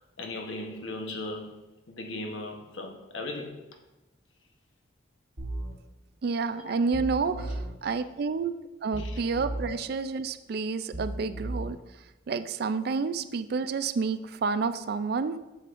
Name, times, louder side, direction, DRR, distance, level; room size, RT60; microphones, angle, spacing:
voice 1, 0.2-3.7 6.5-6.8 7.1-7.6 9.0-9.2 9.7-9.8 13.2-13.3, left 2 dB, 80° left, 1.0 m, -38 dB
sound 1, 5.4-5.7 6.9-7.7 8.9-9.7 10.9-11.7, right 1 dB, 70° right, 1.3 m, -35 dB
voice 2, 6.2-7.4 7.8-8.5 8.8-11.8 12.3-15.4, right 4 dB, 55° right, 0.4 m, -29 dB
8.2 x 7.1 x 2.5 m
head